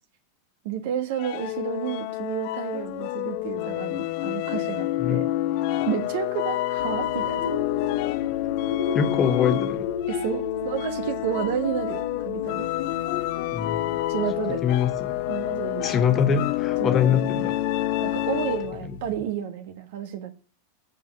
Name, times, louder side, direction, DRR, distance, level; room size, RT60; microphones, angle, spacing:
voice 1, 0.6-5.3 5.9-7.4 10.1-12.6 14.1-14.6 15.3-16.4 16.8-17.2 18.0-20.3, right 9 dB, 50° right, 1.4 m, -31 dB
sound 1, 1.1-18.9, left 16 dB, 45° left, 0.5 m, -28 dB
sound 2, 6.8-19.2, left 4 dB, 65° left, 1.4 m, -35 dB
voice 2, 8.9-9.9 13.5-14.0 14.5-15.2 15.8-17.6 18.9-19.0, left 7 dB, 25° left, 1.3 m, -24 dB
7.4 x 7.2 x 6.7 m
figure-of-eight pair, 90°, 0 cm